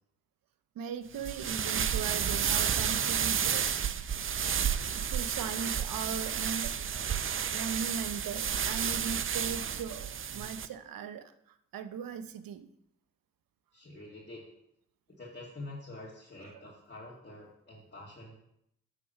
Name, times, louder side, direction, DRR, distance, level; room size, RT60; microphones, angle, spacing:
voice 1, 0.8-3.7 4.9-6.7 7.5-11.3 11.7-12.7 16.4-16.8, right 7 dB, 70° right, 11 dB, 0.7 m, -39 dB
sound 1, 1.2-10.7, right 8 dB, 35° right, 0.5 m, -31 dB
voice 2, 13.7-14.4 15.2-18.4, left 2 dB, 30° left, -6 dB, 2.2 m, -46 dB
8.4 x 3.6 x 5.7 m, 0.75 s
supercardioid pair, 40°, 35 cm